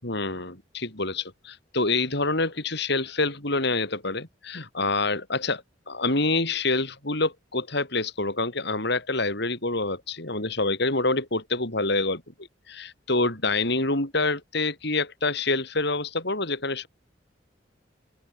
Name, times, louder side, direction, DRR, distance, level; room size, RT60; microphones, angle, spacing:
voice 1, 0.0-12.2 12.7-16.9, left 3 dB, 65° left, 7.9 m, -27 dB
open air
head